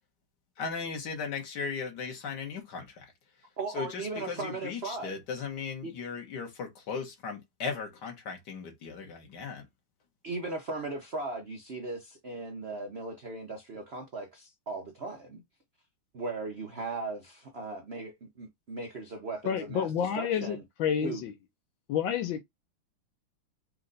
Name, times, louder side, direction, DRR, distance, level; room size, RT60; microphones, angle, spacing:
voice 1, 0.6-3.1 3.7-9.7, left 5 dB, 55° left, 1.7 m, -37 dB
voice 2, 3.6-5.1 5.8-5.9 10.2-15.4 16.1-20.6 21.0-21.2, right 3 dB, 80° right, 0.5 m, -38 dB
voice 3, 19.4-21.3 21.9-22.4, left 8 dB, 70° left, 1.3 m, -29 dB
4.4 x 2.5 x 3.9 m
omnidirectional pair, 2.3 m